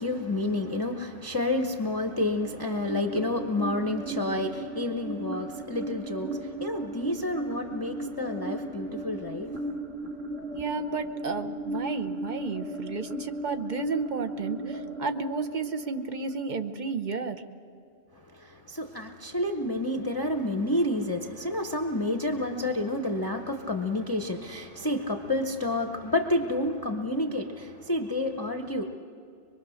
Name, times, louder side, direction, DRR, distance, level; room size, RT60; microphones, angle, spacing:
voice 1, 0.0-9.6 18.3-29.0, left 1 dB, 20° left, 4 dB, 0.8 m, -29 dB
sound 1, 2.1-17.0, right 1 dB, 80° right, 2.5 m, -36 dB
voice 2, 10.5-17.4, right 4 dB, 40° right, 9 dB, 0.9 m, -32 dB
24.0 x 22.5 x 6.4 m, 2.6 s
omnidirectional pair, 1.2 m